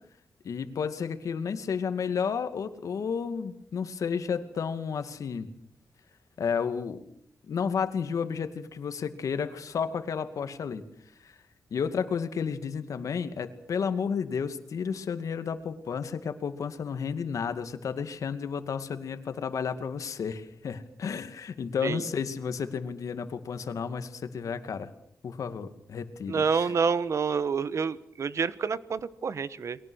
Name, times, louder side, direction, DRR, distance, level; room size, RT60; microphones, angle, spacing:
voice 1, 0.4-5.5 6.4-7.0 7.5-10.8 11.2-11.3 11.7-24.9 25.2-26.7, left 6 dB, 80° left, 9 dB, 2.3 m, -32 dB
voice 2, 26.3-29.8, right 5 dB, 60° right, 16 dB, 1.2 m, -28 dB
29.5 x 22.5 x 6.5 m, 0.65 s
wide cardioid pair, 110°, 6 cm